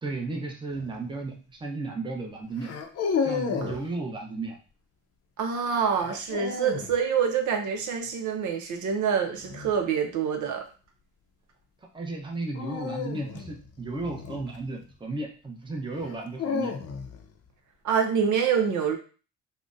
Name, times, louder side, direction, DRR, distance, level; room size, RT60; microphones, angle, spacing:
voice 1, 0.0-2.7 3.2-4.6 11.9-16.7, right 3 dB, 15° right, 1 dB, 0.7 m, -34 dB
sound 1, 0.7-1.1 2.6-3.8 5.9-6.9 9.4-9.8 12.5-14.9 16.0-17.3, left 6 dB, 55° left, 0.5 m, -32 dB
voice 2, 5.4-10.6 17.8-19.0, right 7 dB, 75° right, 4 dB, 0.6 m, -26 dB
3.7 x 2.1 x 2.5 m, 0.36 s
cardioid pair, 90°, 30 cm